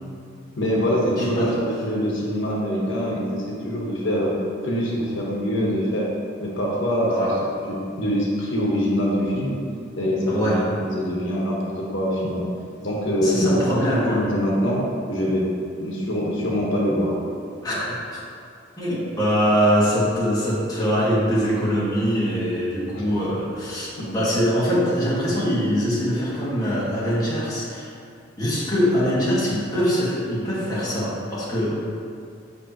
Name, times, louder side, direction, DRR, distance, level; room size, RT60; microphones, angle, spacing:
voice 1, 0.5-4.3 4.6-6.1 6.4-7.6 8.0-9.6 10.0-12.4 12.8-13.6 13.9-14.8 15.1-15.5 15.8-17.1 22.9-23.0 24.0-24.1, equal, 80° left, -3 dB, 1.2 m, -24 dB
voice 2, 1.2-1.6 7.1-7.4 10.3-10.7 13.2-14.3 17.6-18.2 18.8-27.9 28.4-31.8, equal, 20° left, -8 dB, 1.6 m, -23 dB
8.2 x 5.5 x 2.9 m, 2.4 s
head